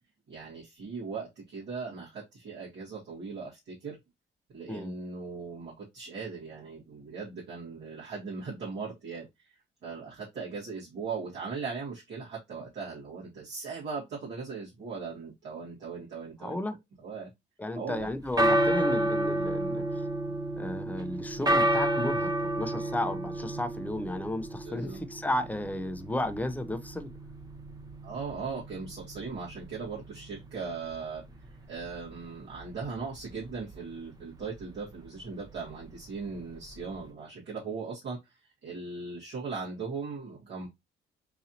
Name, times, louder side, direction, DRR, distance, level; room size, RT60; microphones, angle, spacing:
voice 1, 0.3-4.0 4.5-9.6 9.8-16.6 17.0-17.3 17.7-18.1 23.5-23.6 24.6-25.0 28.0-31.4 31.7-40.7, right 4 dB, 70° right, 2.1 m, -39 dB
voice 2, 16.4-16.8 17.6-20.0 20.6-27.1, left 1 dB, 10° left, 0.5 m, -33 dB
sound 1, 18.0-37.1, right 1 dB, 20° right, 0.8 m, -32 dB
3.9 x 2.7 x 2.8 m
cardioid pair, 90°, 20 cm